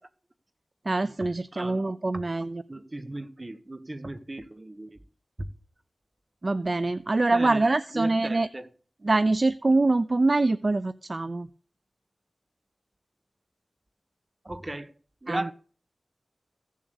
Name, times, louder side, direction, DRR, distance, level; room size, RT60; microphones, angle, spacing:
voice 1, 0.9-2.6 6.4-8.5 9.0-11.5 15.3-15.5, right 2 dB, 45° right, 0.6 m, -24 dB
voice 2, 1.5-2.2 2.7-5.0 5.4-5.5 7.3-8.7 14.4-14.9 15.2-15.5, right 1 dB, 30° right, 1.4 m, -37 dB
15.5 x 7.4 x 7.0 m
wide cardioid pair, 80°, 0 cm